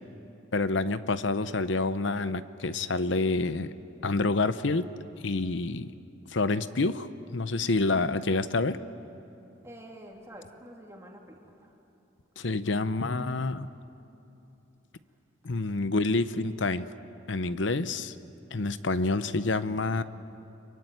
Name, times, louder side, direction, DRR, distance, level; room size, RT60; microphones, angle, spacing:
voice 1, 0.5-3.7 4.0-5.9 6.3-8.8 12.4-13.7 15.4-16.9 17.3-18.1 18.5-20.0, left 3 dB, 70° left, 13 dB, 0.9 m, -28 dB
voice 2, 9.6-11.8, equal, 15° right, 0 dB, 2.9 m, -48 dB
25.5 x 23.0 x 9.3 m, 2.9 s
head